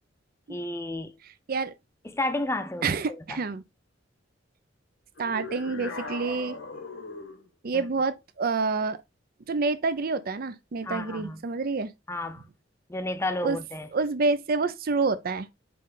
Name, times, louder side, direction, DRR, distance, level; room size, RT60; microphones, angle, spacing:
voice 1, 0.5-1.1 2.1-2.9 3.3-3.4 7.7-7.8 10.8-11.4 12.1-12.4 12.9-13.9, left 2 dB, 15° left, 0.6 m, -31 dB
voice 2, 2.8-3.6 5.2-6.6 7.6-9.0 9.5-11.9 13.4-13.6 13.9-15.5, right 4 dB, 50° right, 0.5 m, -28 dB
sound 1, 5.2-7.5, left 3 dB, 90° left, 1.5 m, -39 dB
7.7 x 3.2 x 3.8 m
head